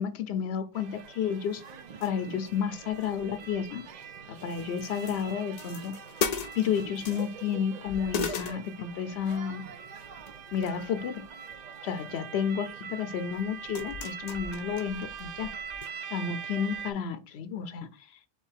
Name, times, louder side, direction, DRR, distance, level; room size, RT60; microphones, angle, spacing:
voice 1, 0.0-1.6 2.0-3.8 4.3-6.0 6.5-9.6 10.5-11.3 11.8-15.5 16.1-17.9, left 7 dB, 90° left, 0.8 m, -31 dB
sound 1, 0.7-16.9, right 7 dB, 55° right, 0.5 m, -43 dB
sound 2, 1.0-1.1 1.4-2.4 2.7-4.0 4.4-7.6 7.9-9.3 10.0-10.8 11.2-11.6 12.6-12.7 13.3-15.9 16.2-16.3 16.7-16.9, left 6 dB, 50° left, 0.6 m, -38 dB
4.5 x 3.1 x 3.4 m
omnidirectional pair, 1.0 m